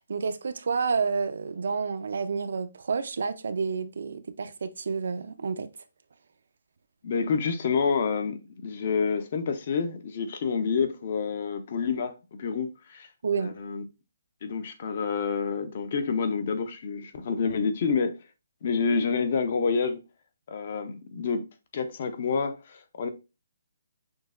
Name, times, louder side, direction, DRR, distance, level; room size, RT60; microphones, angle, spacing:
voice 1, 0.0-5.7 13.2-13.6, right 5 dB, 60° right, 0.4 m, -29 dB
voice 2, 7.0-13.1 13.4-13.8 14.4-18.2 18.6-20.0 20.5-21.5 21.7-23.1, left 5 dB, 35° left, 0.5 m, -28 dB
6.2 x 2.7 x 2.4 m
hypercardioid pair, 180°, 0 cm